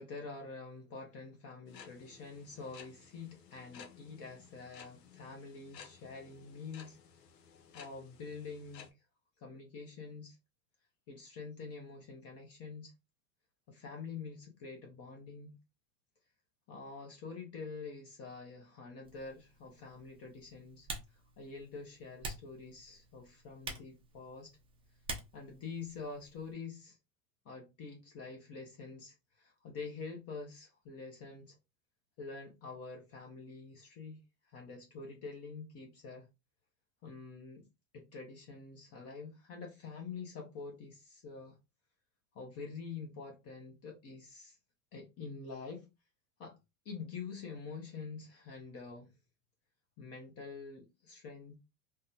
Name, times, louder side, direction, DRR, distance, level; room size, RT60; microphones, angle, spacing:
voice 1, 0.0-7.0 7.7-8.9 9.4-10.4 11.1-12.9 13.7-15.5 16.7-20.9 21.4-24.5 25.3-27.0 27.4-31.6 32.2-34.2 34.5-36.3 37.0-37.6 37.9-41.6 42.3-44.6 44.9-45.9 46.4-46.6 46.8-49.1 50.0-51.6, left 4 dB, 30° left, 0.7 m, -46 dB
sound 1, 1.7-8.9, left 7 dB, 90° left, 0.8 m, -56 dB
Typing, 19.0-26.5, right 3 dB, 10° right, 0.5 m, -48 dB
3.6 x 2.1 x 2.7 m
hypercardioid pair, 115°, 48 cm